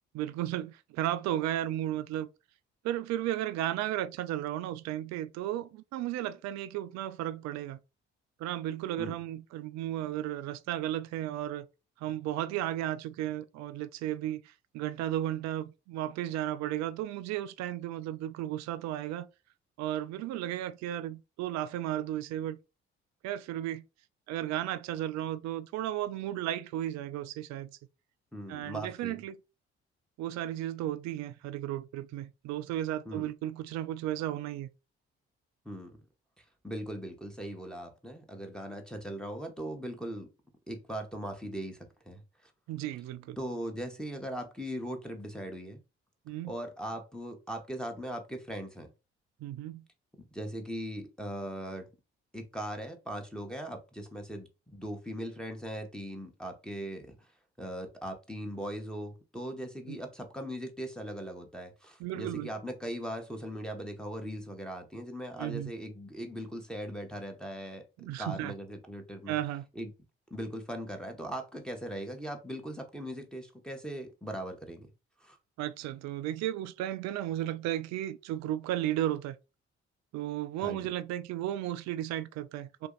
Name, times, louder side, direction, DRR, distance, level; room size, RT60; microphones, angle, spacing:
voice 1, 0.1-2.3 2.8-7.8 8.4-11.7 12.0-19.3 19.8-22.6 23.2-23.8 24.3-27.8 28.5-29.4 30.2-34.7 42.7-43.4 46.3-46.5 49.4-49.8 59.9-60.0 62.0-62.5 65.4-65.7 68.0-68.5 69.3-69.7 75.6-79.4 80.1-82.9, right 13 dB, 55° right, 0.4 m, -34 dB
voice 2, 28.3-29.2 33.1-33.3 35.6-36.0 36.4-40.3 40.7-41.8 42.1-42.5 43.4-45.8 46.4-48.9 50.2-51.9 52.3-57.3 57.6-67.9 68.2-69.4 69.7-69.9 70.3-74.9 75.2-75.4 80.6-80.9, equal, ahead, 1.0 m, -39 dB
2.9 x 2.6 x 3.8 m
hypercardioid pair, 45°, 32 cm